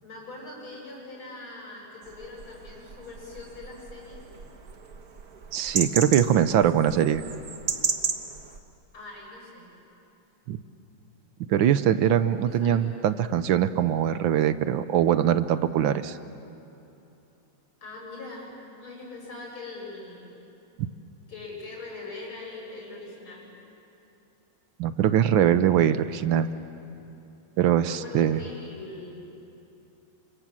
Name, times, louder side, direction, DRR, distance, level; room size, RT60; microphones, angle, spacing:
voice 1, 0.0-4.3 8.9-9.7 12.5-12.9 17.8-20.4 21.3-23.5 27.8-29.2, left 3 dB, 80° left, -2 dB, 7.8 m, -42 dB
sound 1, 2.0-8.6, right 5 dB, 50° right, 1.7 m, -34 dB
voice 2, 5.5-7.2 10.5-10.6 11.5-16.2 24.8-26.5 27.6-28.4, right 10 dB, 75° right, 12 dB, 1.5 m, -22 dB
30.0 x 25.5 x 7.5 m, 2.8 s
omnidirectional pair, 2.3 m